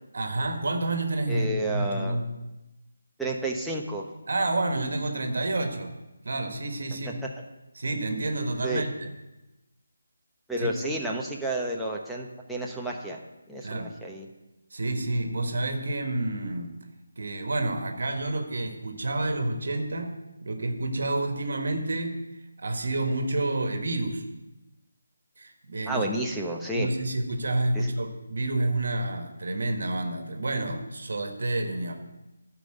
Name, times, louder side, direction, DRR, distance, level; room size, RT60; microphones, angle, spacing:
voice 1, 0.1-2.3 4.3-5.9 6.2-7.2 7.7-9.1 10.6-10.7 13.6-13.9 14.7-16.8 17.2-22.2 22.6-24.2 25.4-26.0 26.7-31.9, right 2 dB, 60° right, 5 dB, 1.6 m, -29 dB
voice 2, 1.3-2.2 3.2-4.0 7.0-7.1 8.6-8.8 10.5-13.2 13.5-14.3 25.9-26.9 27.7-27.9, right 1 dB, ahead, -4 dB, 0.9 m, -31 dB
11.0 x 5.5 x 7.8 m, 1.0 s
figure-of-eight pair, 165°, 0 cm